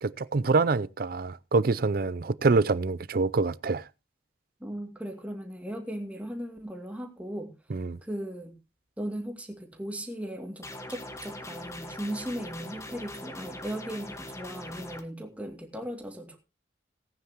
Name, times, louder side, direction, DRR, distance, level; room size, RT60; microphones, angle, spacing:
voice 1, 0.0-3.8 7.7-8.0, right 3 dB, 55° right, 0.5 m, -26 dB
voice 2, 4.6-7.5 8.0-8.6 9.0-16.4, equal, 10° right, 2.4 m, -37 dB
sound 1, 10.6-15.0, left 1 dB, 15° left, 1.5 m, -42 dB
18.5 x 9.4 x 3.0 m
head